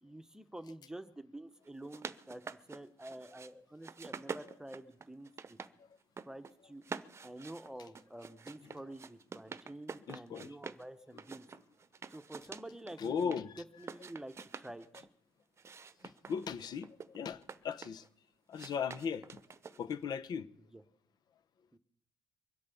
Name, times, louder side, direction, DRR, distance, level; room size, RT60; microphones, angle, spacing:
voice 1, 0.0-5.6 6.2-6.8 7.2-11.4 12.1-13.3 13.8-15.1 20.7-20.8 21.7-21.8, right 1 dB, 5° right, 1.1 m, -49 dB
sound 1, 1.7-3.5 3.8-5.7 6.0-6.5 6.8-10.8 11.2-13.4 13.8-15.1 15.6-18.1 18.5-20.0, right 5 dB, 35° right, 0.9 m, -47 dB
voice 2, 10.1-10.5 13.0-13.6 16.3-18.0 18.5-19.3 19.8-20.5, left 6 dB, 55° left, 1.0 m, -37 dB
23.5 x 8.4 x 7.1 m
supercardioid pair, 80°, 8 cm